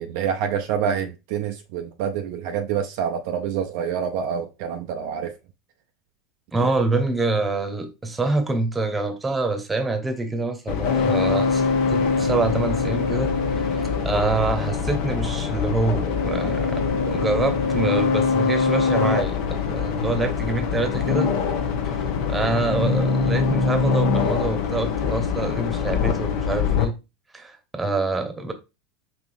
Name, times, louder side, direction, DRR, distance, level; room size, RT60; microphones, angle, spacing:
voice 1, 0.0-5.4 6.6-6.7, right 8 dB, 60° right, 0.5 m, -27 dB
voice 2, 6.5-11.6 11.9-13.3 13.7-21.3 21.9-27.0 27.3-28.5, right 3 dB, 15° right, 0.9 m, -26 dB
sound 1, 10.7-26.9, left 5 dB, 55° left, 0.7 m, -23 dB
5.5 x 2.9 x 2.6 m
figure-of-eight pair, 80°, 0 cm